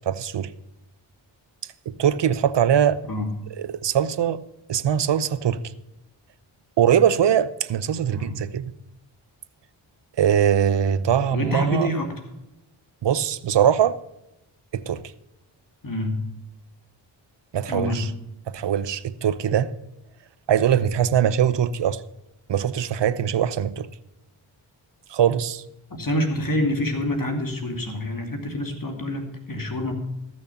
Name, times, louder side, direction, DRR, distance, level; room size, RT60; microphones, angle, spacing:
voice 1, 0.1-0.5 2.0-3.0 3.6-4.4 4.7-5.6 6.8-8.7 10.2-11.9 13.0-14.0 14.7-15.0 17.5-18.1 18.5-19.7 20.5-22.0 22.5-23.9 25.1-25.6, right 9 dB, 55° right, 0.8 m, -21 dB
voice 2, 11.3-12.2 15.8-16.3 17.7-18.1 25.9-29.9, left 1 dB, 40° left, 2.5 m, -27 dB
14.0 x 6.4 x 7.0 m
cardioid pair, 40°, 50 cm